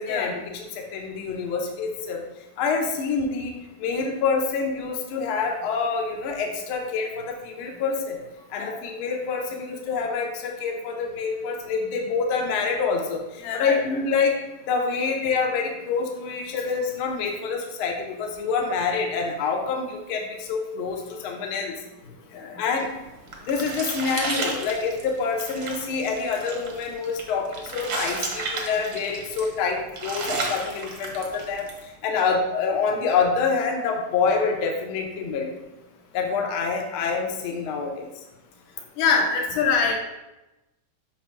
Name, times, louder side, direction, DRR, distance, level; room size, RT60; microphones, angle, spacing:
voice 1, 0.0-2.2 2.6-3.5 3.8-8.2 8.5-14.4 14.7-21.7 22.6-22.9 23.4-35.5 36.1-38.2, left 5 dB, 70° left, 1 dB, 1.2 m, -26 dB
voice 2, 13.4-13.8 22.3-22.6 39.0-40.0, left 5 dB, 85° left, 0 dB, 2.6 m, -23 dB
sound 1, 22.9-31.8, right 3 dB, 60° right, 1.3 m, -33 dB
9.2 x 5.7 x 2.2 m, 0.99 s
omnidirectional pair, 3.6 m